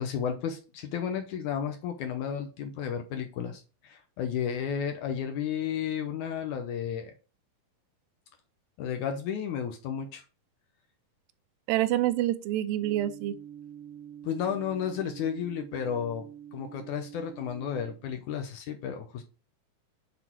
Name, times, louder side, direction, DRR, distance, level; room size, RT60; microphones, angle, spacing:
voice 1, 0.0-7.1 8.8-10.2 14.2-16.2 16.5-19.2, left 8 dB, 75° left, 2.0 m, -33 dB
voice 2, 11.7-13.4, right 14 dB, 85° right, 2.4 m, -27 dB
sound 1, 12.8-17.9, right 9 dB, 60° right, 1.3 m, -46 dB
8.1 x 3.9 x 4.4 m
omnidirectional pair, 4.1 m